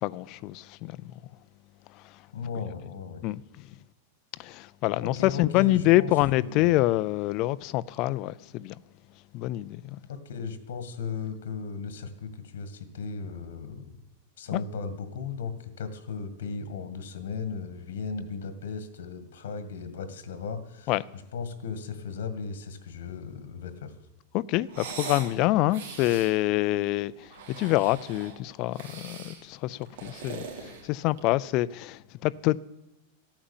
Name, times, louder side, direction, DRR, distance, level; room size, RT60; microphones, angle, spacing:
voice 1, 0.0-1.0 3.2-3.4 4.4-8.7 9.3-10.0 14.5-14.6 20.9-21.0 24.3-27.3 27.6-32.6, left 17 dB, 35° left, 0.4 m, -26 dB
voice 2, 2.3-3.2 5.0-6.7 10.1-14.0 14.4-23.9, left 5 dB, 85° left, 1.9 m, -36 dB
sound 1, 24.7-25.3 25.7-26.3 27.2-28.4 28.7-29.4 29.8-31.3, right 6 dB, 65° right, 3.2 m, -41 dB
14.0 x 8.8 x 7.3 m
supercardioid pair, 170°, 0 cm